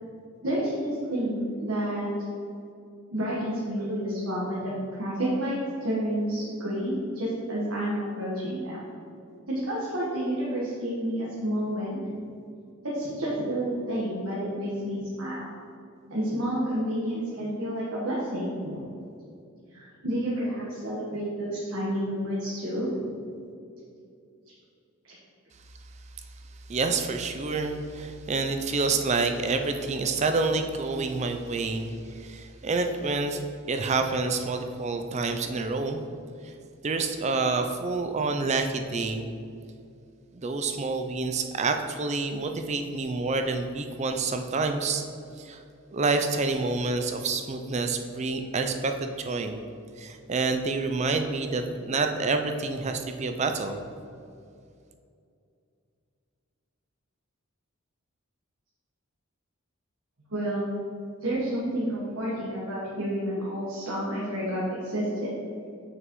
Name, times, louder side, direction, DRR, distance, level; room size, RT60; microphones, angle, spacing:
voice 1, 0.4-2.1 3.1-4.7 5.0-8.9 9.5-12.0 12.9-15.5 16.1-18.8 19.7-23.1 25.0-25.2 60.3-60.7 61.2-65.3, equal, 70° right, -7 dB, 1.3 m, -30 dB
voice 2, 26.7-33.4 33.7-36.0 36.4-36.5 36.8-39.3 40.3-45.0 45.4-45.6 45.9-49.6 50.0-53.8, right 3 dB, 30° right, 6 dB, 0.4 m, -28 dB
7.3 x 6.4 x 3.1 m, 2.5 s
head